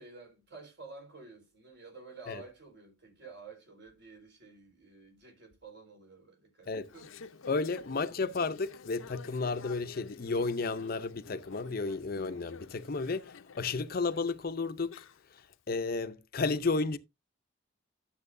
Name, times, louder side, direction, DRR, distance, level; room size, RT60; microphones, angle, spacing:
voice 1, 0.0-7.5 12.1-12.2, right 3 dB, 55° right, 4.3 m, -51 dB
Conversation / Chatter, 6.6-15.6, left 5 dB, 85° left, 0.6 m, -51 dB
voice 2, 7.5-15.0 15.3-15.4 15.7-17.0, left 3 dB, 45° left, 0.6 m, -32 dB
12.0 x 7.3 x 2.6 m
head